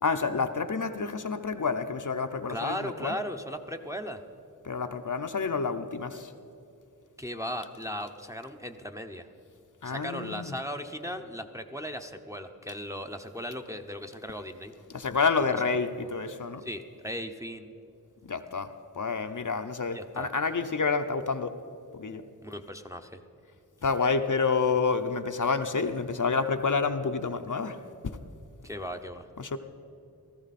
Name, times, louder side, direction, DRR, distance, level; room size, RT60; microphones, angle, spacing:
voice 1, 0.0-3.1 4.6-6.3 9.8-10.5 14.9-16.6 18.2-21.5 22.0-22.2 23.8-27.8 29.4-29.6, left 4 dB, 55° left, 7 dB, 0.7 m, -29 dB
voice 2, 2.5-4.2 7.2-9.3 9.8-14.7 16.0-16.1 16.6-17.7 19.9-20.3 22.4-23.2 28.6-29.3, equal, 10° right, 4 dB, 0.8 m, -37 dB
17.5 x 14.0 x 4.2 m, 2.7 s
wide cardioid pair, 45°, 38 cm